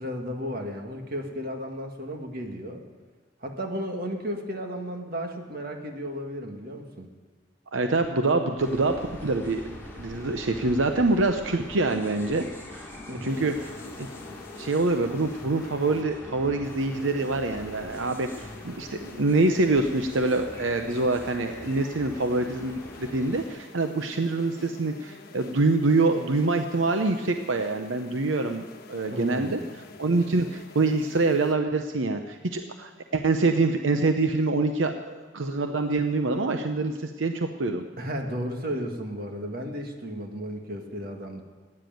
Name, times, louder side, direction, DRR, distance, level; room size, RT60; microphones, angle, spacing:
voice 1, 0.0-2.8 3.4-7.1 13.1-13.4 29.1-29.7 38.0-41.4, equal, 50° right, 3 dB, 1.9 m, -34 dB
voice 2, 7.7-12.9 13.2-13.7 14.5-29.6 30.0-37.9, right 3 dB, 80° right, 6 dB, 0.8 m, -25 dB
sound 1, 8.6-23.5, left 1 dB, 15° left, 3.2 m, -43 dB
sound 2, 13.3-16.0 16.6-31.5, left 3 dB, 55° left, 1.2 m, -47 dB
15.0 x 9.8 x 9.2 m, 1.4 s
head